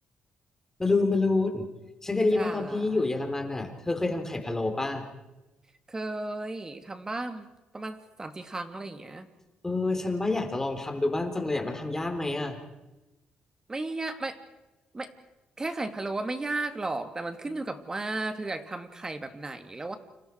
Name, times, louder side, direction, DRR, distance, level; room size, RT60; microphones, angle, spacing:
voice 1, 0.8-1.7 2.0-5.0 9.6-12.6, left 2 dB, 15° left, 5 dB, 3.9 m, -27 dB
voice 2, 2.3-3.1 5.9-9.3 13.7-14.4 14.9-15.1 15.6-20.0, right 2 dB, 20° right, 8 dB, 2.6 m, -34 dB
30.0 x 27.0 x 4.8 m, 1.0 s
cardioid pair, 100°, 3 cm